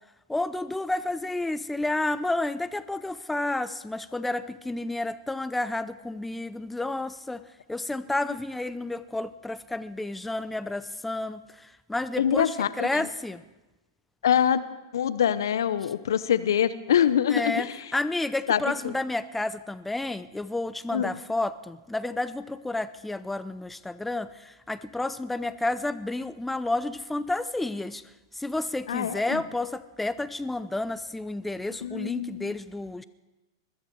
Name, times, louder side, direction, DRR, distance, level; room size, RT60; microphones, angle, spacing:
voice 1, 0.3-7.4 7.7-13.4 17.3-28.0 28.3-33.0, left 2 dB, 5° left, 14 dB, 0.5 m, -31 dB
voice 2, 12.2-13.0 14.2-14.6 14.9-17.7 18.5-18.9 20.9-21.1 28.9-29.4 31.8-32.5, left 9 dB, 75° left, 15 dB, 0.8 m, -25 dB
21.5 x 14.0 x 4.7 m, 1.0 s
hypercardioid pair, 110°, 2 cm